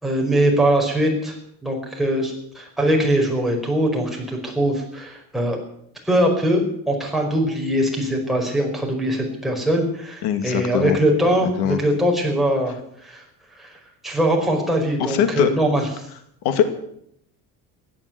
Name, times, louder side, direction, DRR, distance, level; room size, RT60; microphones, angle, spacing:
voice 1, 0.0-1.3 1.6-5.6 6.0-12.7 13.0-13.2 13.6-13.8 14.0-15.9, right 1 dB, ahead, -1 dB, 4.9 m, -21 dB
voice 2, 10.2-11.0 11.6-11.8 15.0-15.5 16.4-16.6, left 10 dB, 85° left, 9 dB, 2.3 m, -21 dB
16.0 x 9.6 x 9.3 m, 0.73 s
cardioid pair, 130°, 38 cm